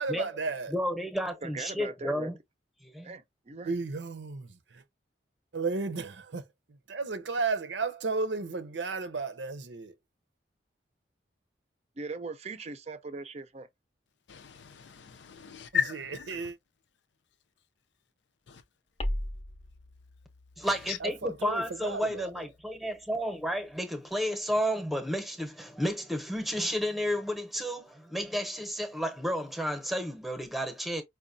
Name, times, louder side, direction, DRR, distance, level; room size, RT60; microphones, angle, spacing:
voice 1, 0.0-0.7 3.7-4.8 5.5-6.4 6.9-9.9 15.7-16.6 21.0-22.4, right 4 dB, 85° right, 0.7 m, -33 dB
voice 2, 0.7-2.4 2.8-3.1 20.6-31.0, equal, ahead, 0.8 m, -32 dB
voice 3, 1.4-2.3 3.0-3.7 12.0-13.7, right 4 dB, 35° right, 0.5 m, -40 dB
voice 4, 14.3-16.4 18.5-18.6 20.9-21.0, left 7 dB, 80° left, 0.5 m, -34 dB
sound 1, 19.0-23.8, left 1 dB, 30° left, 0.5 m, -40 dB
5.0 x 2.2 x 2.6 m
head